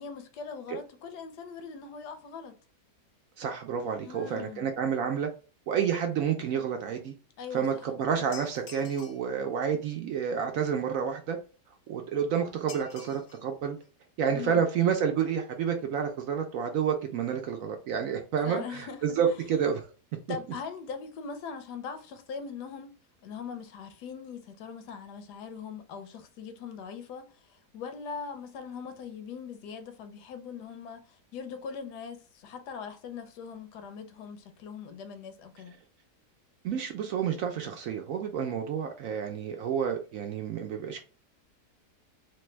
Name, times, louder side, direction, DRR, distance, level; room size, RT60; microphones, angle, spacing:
voice 1, 0.0-2.5 4.0-4.7 7.4-7.9 14.3-14.6 18.4-19.0 20.3-22.9 23.2-35.7, left 6 dB, 80° left, 1.2 m, -41 dB
voice 2, 3.4-5.3 5.7-7.1 7.5-11.4 11.9-13.8 14.2-19.9 36.6-41.0, right 7 dB, 70° right, 0.8 m, -29 dB
sound 1, 8.3-9.3 12.7-13.4 13.8-13.9 14.8-14.9 15.2-15.3 15.5-15.7 16.0-16.1, left 6 dB, 55° left, 0.7 m, -48 dB
3.2 x 2.2 x 3.0 m
omnidirectional pair, 1.8 m